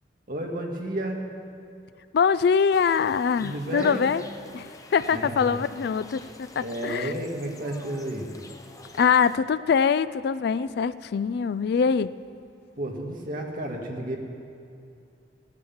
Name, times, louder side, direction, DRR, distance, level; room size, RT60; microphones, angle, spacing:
voice 1, 0.3-1.2 3.4-4.1 5.1-5.6 6.6-8.3 12.8-14.2, right 1 dB, 50° right, 0 dB, 1.9 m, -32 dB
voice 2, 2.1-4.2 4.5-7.1 9.0-12.1, left 6 dB, 60° left, 15 dB, 0.3 m, -23 dB
sound 1, 2.7-9.4, left 2 dB, 20° left, 0.8 m, -47 dB
16.0 x 9.7 x 7.2 m, 2.6 s
head